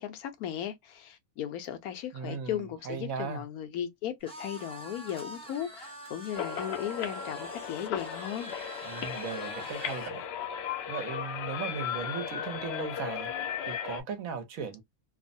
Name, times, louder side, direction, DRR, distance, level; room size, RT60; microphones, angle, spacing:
voice 1, 0.0-8.5, left 10 dB, 80° left, 1.1 m, -36 dB
voice 2, 2.1-3.4 8.8-10.2 10.9-13.3 13.7-14.8, right 6 dB, 70° right, 1.1 m, -37 dB
sound 1, 4.2-10.2, right 1 dB, 5° left, 0.5 m, -44 dB
sound 2, 6.3-14.0, left 8 dB, 65° left, 0.7 m, -36 dB
3.0 x 2.0 x 2.5 m
omnidirectional pair, 1.5 m